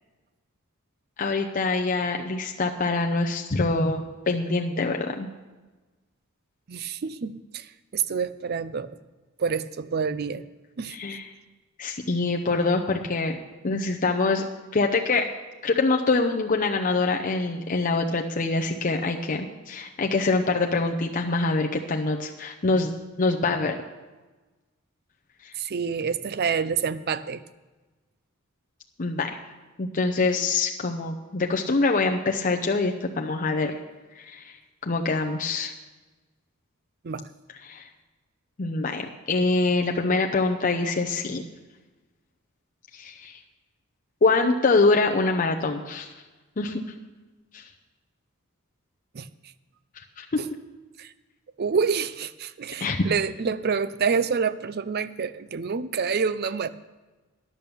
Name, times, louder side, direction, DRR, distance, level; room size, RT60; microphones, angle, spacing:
voice 1, 1.2-5.3 10.9-11.3 11.8-13.4 13.6-14.4 14.7-15.2 15.6-22.9 23.2-23.8 29.0-29.4 29.8-33.7 34.2-34.5 34.8-35.7 37.6-37.9 38.6-41.4 42.9-43.4 44.2-46.1 46.6-46.8 47.5-47.6 50.2-50.3 52.8-53.1, left 3 dB, 40° left, 2 dB, 0.7 m, -24 dB
voice 2, 6.7-7.7 7.9-8.9 9.4-10.4 10.8-11.0 25.6-27.4 37.0-37.2 49.1-49.3 50.4-50.5 51.0-51.1 51.6-56.7, right 6 dB, 50° right, 15 dB, 0.5 m, -27 dB
10.5 x 8.4 x 6.9 m, 1.2 s
head